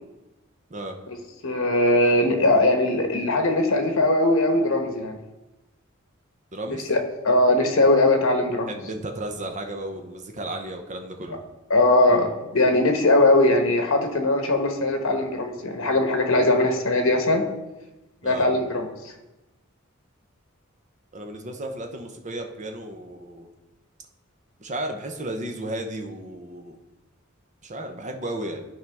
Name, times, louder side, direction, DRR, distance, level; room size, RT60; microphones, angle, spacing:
voice 1, 1.4-5.2 6.9-8.7 11.7-17.4 18.2-18.9, left 2 dB, 80° left, 4 dB, 1.2 m, -20 dB
voice 2, 6.5-6.9 8.7-11.4 18.2-18.5 21.1-23.5 24.6-26.8 27.6-28.7, right 1 dB, 35° right, 4 dB, 0.8 m, -34 dB
11.5 x 4.6 x 3.5 m, 1.0 s
head